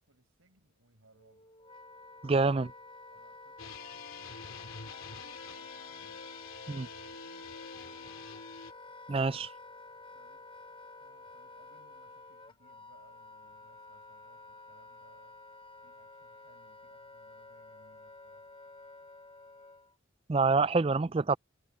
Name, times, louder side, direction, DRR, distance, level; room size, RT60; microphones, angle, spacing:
voice 1, 0.0-1.5 3.0-8.5 10.1-10.5 11.0-15.4 15.8-18.5, right 2 dB, 80° right, 5.9 m, -65 dB
Wind instrument woodwind instrument, 1.1-20.0, left 3 dB, 25° left, 0.9 m, -51 dB
voice 2, 2.2-2.7 6.7-6.9 9.1-9.5 20.3-21.4, right 3 dB, 30° right, 0.4 m, -26 dB
sound 1, 3.6-8.7, left 5 dB, 85° left, 2.8 m, -46 dB
head